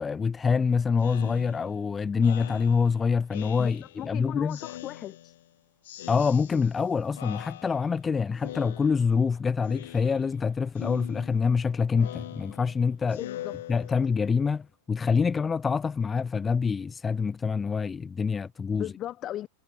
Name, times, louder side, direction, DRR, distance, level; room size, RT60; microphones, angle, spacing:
voice 1, 0.0-4.6 6.1-13.2 13.7-18.9, left 5 dB, 15° left, 1.1 m, -26 dB
Speech synthesizer, 1.0-4.1 4.5-5.5 5.8-6.9 7.1-8.1 8.4-9.3 9.6-10.4 10.7-14.3, left 13 dB, 55° left, 1.4 m, -43 dB
voice 2, 4.0-5.4 13.1-13.5 18.7-19.5, left 12 dB, 30° left, 6.2 m, -37 dB
figure-of-eight pair, 90°, 0 cm